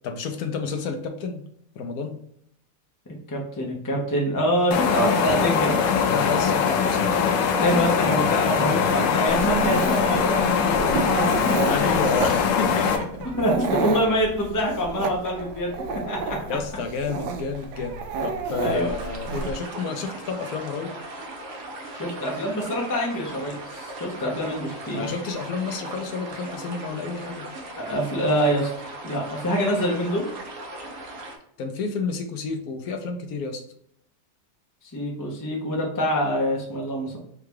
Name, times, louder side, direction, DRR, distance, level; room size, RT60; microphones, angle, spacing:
voice 1, 0.0-1.4 1.8-2.2 6.1-7.0 11.7-13.3 16.5-21.0 24.9-27.5 31.6-33.6, left 4 dB, 70° left, 5 dB, 1.0 m, -30 dB
voice 2, 3.1-5.7 7.6-11.3 13.3-15.8 16.1-16.4 18.6-18.9 21.9-25.1 27.8-30.2 34.9-37.2, equal, 30° left, -1 dB, 0.3 m, -25 dB
sound 1, 4.7-13.0, left 6 dB, 90° left, 1.3 m, -22 dB
Dog, 9.3-19.5, right 4 dB, 80° right, 1.2 m, -31 dB
sound 2, 18.7-31.4, right 2 dB, 60° right, 0.9 m, -38 dB
3.7 x 2.3 x 4.5 m, 0.71 s
omnidirectional pair, 1.9 m